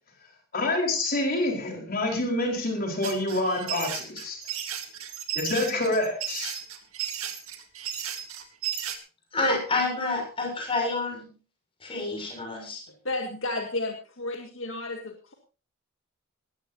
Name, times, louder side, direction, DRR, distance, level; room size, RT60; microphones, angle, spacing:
voice 1, 0.5-4.4 5.3-6.5, left 2 dB, 45° left, 1 dB, 4.5 m, -27 dB
sound 1, 3.0-9.0, right 10 dB, 90° right, 2.5 m, -34 dB
voice 2, 9.3-11.2 11.8-12.8, left 2 dB, 25° left, 2 dB, 6.8 m, -28 dB
voice 3, 13.0-15.3, left 2 dB, 65° left, 3 dB, 2.0 m, -32 dB
20.0 x 15.0 x 2.8 m, 0.34 s
head